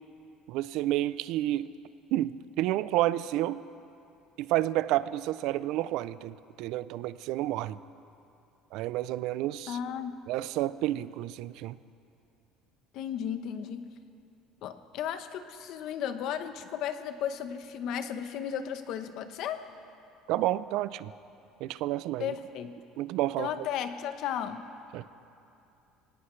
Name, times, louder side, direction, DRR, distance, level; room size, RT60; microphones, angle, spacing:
voice 1, 0.5-1.7 2.1-3.6 4.4-7.8 8.7-9.8 10.3-11.8 20.3-21.1 21.6-22.3 23.0-23.5 24.9-25.1, right 15 dB, 70° right, 16 dB, 0.4 m, -30 dB
voice 2, 9.7-10.2 12.9-13.9 14.6-19.6 22.2-22.8 23.4-24.7, left 9 dB, 60° left, 9 dB, 0.9 m, -35 dB
24.0 x 18.0 x 3.3 m, 2.7 s
cardioid pair, 140°, 0 cm